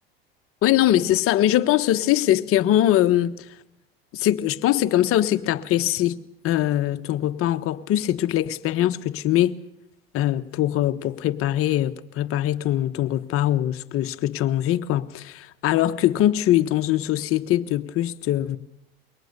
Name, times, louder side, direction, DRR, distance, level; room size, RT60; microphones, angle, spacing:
voice 1, 0.6-3.5 4.1-9.6 10.1-18.6, left 13 dB, 45° left, 1.2 m, -22 dB
23.0 x 18.5 x 6.8 m
hypercardioid pair, 100°, 30 cm